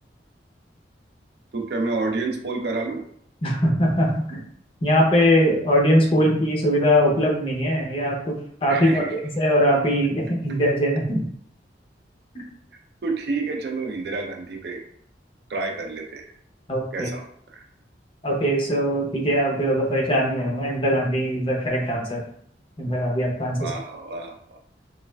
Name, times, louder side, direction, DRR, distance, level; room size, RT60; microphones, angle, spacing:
voice 1, 1.5-3.1 8.7-9.2 13.0-14.8 15.5-16.3 16.9-17.7 23.6-24.6, right 3 dB, 65° right, 2 dB, 0.4 m, -29 dB
voice 2, 3.4-4.4 4.8-9.0 9.4-11.2 12.3-12.4 16.7-17.1 18.2-22.2 22.8-23.7, equal, 30° left, -1 dB, 0.6 m, -21 dB
3.1 x 2.3 x 2.2 m, 0.64 s
head